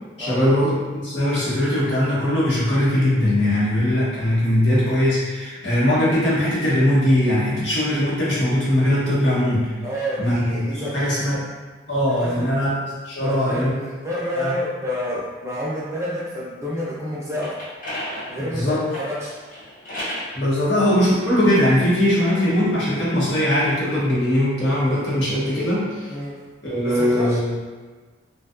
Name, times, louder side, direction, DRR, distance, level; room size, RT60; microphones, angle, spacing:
voice 1, 0.2-9.7 10.2-11.3 11.9-12.7 13.0-13.7 14.3-14.5 18.4-18.8 20.3-26.1 26.6-27.5, left 1 dB, 75° left, -8 dB, 0.9 m, -20 dB
voice 2, 9.8-11.4 12.2-12.5 13.2-17.6 18.3-19.3 26.1-26.5 26.8-27.4, equal, 15° right, -7 dB, 0.4 m, -29 dB
sound 1, 17.1-20.4 21.1-22.8 23.3-25.6, equal, 45° left, 0.6 m, -36 dB
2.5 x 2.2 x 2.4 m, 1.4 s
head